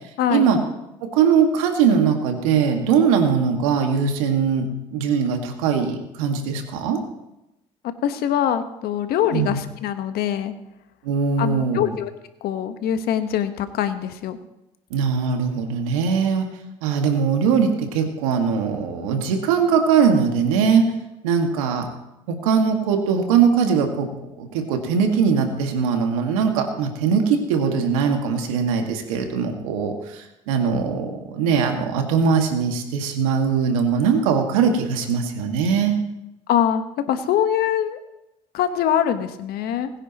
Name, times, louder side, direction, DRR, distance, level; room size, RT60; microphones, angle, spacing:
voice 1, 1.0-7.0 9.3-9.6 11.0-11.9 14.9-16.5 16.8-20.9 21.2-21.9 22.3-24.1 24.4-36.0, right 6 dB, 85° right, 4 dB, 1.9 m, -21 dB
voice 2, 8.0-10.5 11.4-12.1 12.4-14.4 36.5-38.0 38.5-39.9, left 10 dB, 70° left, 9 dB, 1.3 m, -23 dB
21.0 x 9.9 x 3.0 m, 0.92 s
hypercardioid pair, 60°, 17 cm